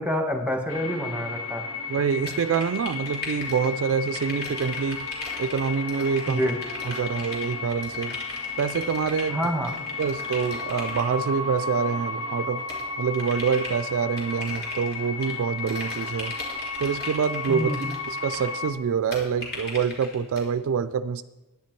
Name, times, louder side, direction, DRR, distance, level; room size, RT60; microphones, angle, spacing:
voice 1, 0.0-1.6 6.3-6.6 9.3-9.7 17.5-17.9, equal, 5° right, 5 dB, 1.2 m, -27 dB
sound 1, 0.7-18.7, left 4 dB, 85° left, 1.0 m, -34 dB
voice 2, 1.9-5.1 5.4-6.5 6.8-8.2 8.6-9.4 10.0-12.6 13.0-16.3 16.8-17.7 18.1-21.2, right 6 dB, 65° right, 14 dB, 0.3 m, -26 dB
sound 2, 2.3-3.7 4.0-11.1 12.7-13.8 14.2-15.3 15.6-18.5 19.1-20.4, left 2 dB, 50° left, 2.9 m, -39 dB
10.5 x 9.0 x 4.5 m, 1.1 s
head